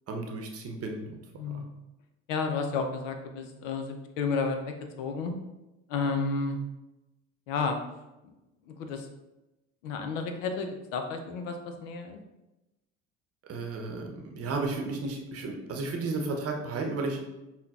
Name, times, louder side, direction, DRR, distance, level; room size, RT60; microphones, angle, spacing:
voice 1, 0.1-1.2 1.5-1.6 13.5-17.3, right 3 dB, 40° right, 2 dB, 0.8 m, -33 dB
voice 2, 1.4-1.8 2.3-5.3 5.9-6.6 7.5-7.8 8.7-9.1 9.8-12.2, left 4 dB, 75° left, 5 dB, 0.6 m, -32 dB
5.6 x 2.2 x 2.3 m, 0.99 s
hypercardioid pair, 60°, 37 cm